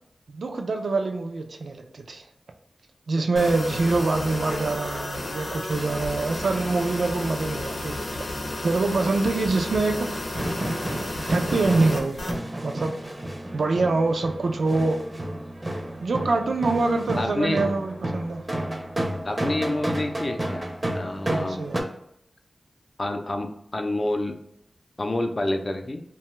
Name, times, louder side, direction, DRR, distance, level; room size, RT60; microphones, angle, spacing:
voice 1, 0.3-2.2 3.1-8.2 8.6-10.2 11.3-12.2 12.6-13.2 13.5-15.0 16.0-18.5 21.2-21.9, right 3 dB, 85° right, 4 dB, 0.3 m, -25 dB
sound 1, 3.4-12.4, left 1 dB, 70° left, 0.7 m, -32 dB
sound 2, 10.3-21.8, right 1 dB, 25° right, 0.5 m, -31 dB
voice 2, 17.2-17.6 19.2-21.6 23.0-24.3 25.0-26.0, left 1 dB, 40° left, 4 dB, 0.4 m, -28 dB
2.7 x 2.3 x 3.0 m, 0.74 s
wide cardioid pair, 95°, 0 cm